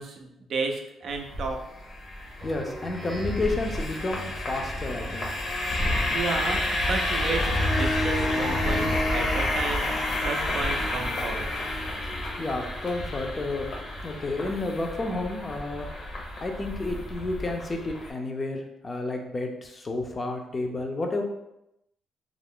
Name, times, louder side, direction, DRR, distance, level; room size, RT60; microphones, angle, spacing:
voice 1, 0.0-1.6 6.1-11.5, right 4 dB, 65° right, 3 dB, 0.4 m, -33 dB
sound 1, 1.1-18.1, left 1 dB, 65° left, 0.8 m, -29 dB
voice 2, 2.4-5.3 12.4-13.7 14.0-15.9 16.4-21.2, left 2 dB, 30° left, 3 dB, 0.5 m, -31 dB
Speech synthesizer, 2.4-5.7, right 1 dB, 25° right, 0.8 m, -42 dB
2.4 x 2.0 x 3.5 m, 0.85 s
cardioid pair, 90°, 0 cm